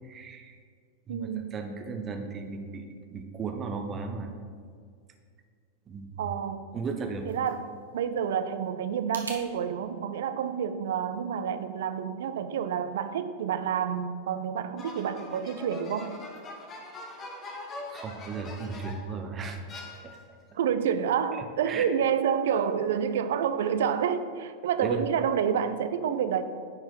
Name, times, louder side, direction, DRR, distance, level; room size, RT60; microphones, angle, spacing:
voice 1, 0.1-0.6 1.1-2.8 3.1-4.3 5.9-6.3 6.7-7.2 17.9-19.6 20.0-20.2 21.3-21.8 24.8-25.0, right 5 dB, 25° right, 5 dB, 0.9 m, -36 dB
voice 2, 1.1-1.5 6.2-6.8 7.3-16.1 20.5-26.4, right 8 dB, 60° right, 11 dB, 0.5 m, -29 dB
sound 1, 6.8-9.4, right 3 dB, 75° right, 1.0 m, -45 dB
sound 2, 14.8-19.2 19.7-20.4, left 2 dB, 25° left, 1.2 m, -43 dB
9.5 x 4.6 x 4.9 m, 2.1 s
figure-of-eight pair, 90°, 0 cm